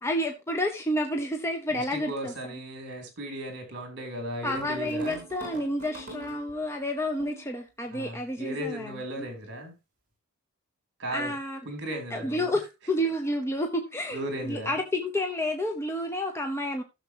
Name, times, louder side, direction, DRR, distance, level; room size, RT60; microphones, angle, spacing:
voice 1, 0.0-2.3 4.4-9.3 11.1-11.6 12.1-12.6 12.9-16.8, left 1 dB, 10° left, 0.8 m, -30 dB
voice 2, 1.7-5.2 7.9-9.7 11.0-11.3 11.6-12.5 14.1-14.8, right 1 dB, 55° right, 3.3 m, -36 dB
sound 1, 4.4-6.7 7.2-7.6, right 1 dB, 35° right, 4.1 m, -43 dB
15.5 x 6.7 x 2.9 m
head